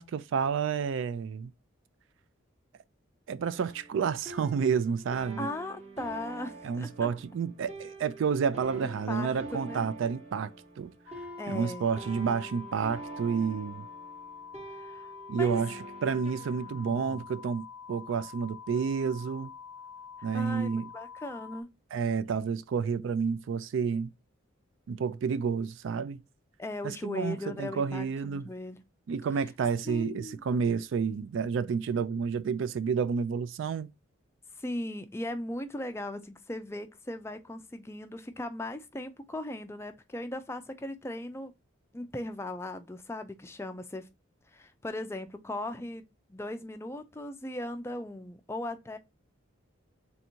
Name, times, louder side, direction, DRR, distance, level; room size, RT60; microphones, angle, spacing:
voice 1, 0.0-1.5 3.3-5.5 6.6-10.5 10.8-10.9 11.5-13.9 15.3-19.5 20.2-20.9 21.9-24.1 24.9-26.2 26.8-28.5 29.1-33.9, right 6 dB, 70° right, 0.3 m, -30 dB
sound 1, 3.4-17.2, right 2 dB, 30° right, 1.0 m, -46 dB
voice 2, 5.4-7.1 8.8-9.3 9.6-9.9 11.4-11.9 14.8-15.6 18.7-18.8 20.2-21.7 26.6-28.8 29.9-30.4 34.6-41.5 41.9-44.1 44.5-46.0 46.3-49.0, left 1 dB, 15° left, 0.3 m, -38 dB
sound 2, 11.1-21.6, left 6 dB, 85° left, 0.6 m, -46 dB
3.5 x 2.6 x 4.3 m
head